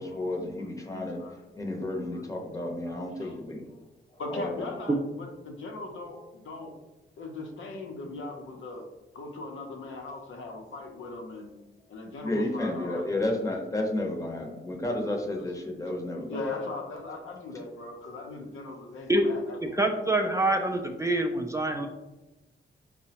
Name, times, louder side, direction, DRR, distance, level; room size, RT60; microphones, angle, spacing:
voice 1, 0.0-1.2 1.5-3.7 4.1-4.5 12.2-16.4, left 1 dB, 15° left, 0 dB, 0.7 m, -32 dB
voice 2, 2.6-3.6 4.2-6.7 7.2-8.9 9.1-11.5 11.9-13.1 15.4-15.6 16.3-20.1, left 3 dB, 85° left, 2 dB, 0.6 m, -39 dB
voice 3, 19.7-21.9, right 1 dB, 15° right, 3 dB, 0.3 m, -26 dB
4.6 x 2.1 x 2.8 m, 1.0 s
cardioid pair, 85°, 20 cm